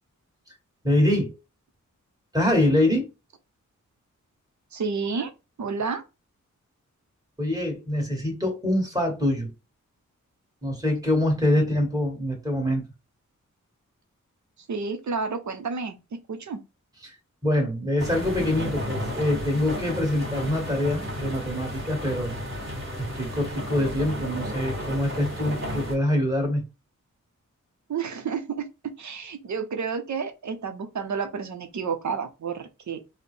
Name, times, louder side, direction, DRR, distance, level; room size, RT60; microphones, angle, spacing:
voice 1, 0.8-1.4 2.3-3.1 7.4-9.5 10.6-12.8 17.0-17.1 17.4-22.4 23.0-26.6, left 1 dB, 10° right, 1.8 m, -24 dB
voice 2, 4.7-5.3 5.6-6.0 11.6-11.7 14.7-16.0 16.3-16.6 27.9-28.7 29.0-33.0, right 5 dB, 65° right, 0.7 m, -30 dB
sound 1, 18.0-25.9, equal, 40° right, 1.8 m, -33 dB
4.0 x 2.1 x 3.3 m
wide cardioid pair, 75°, 31 cm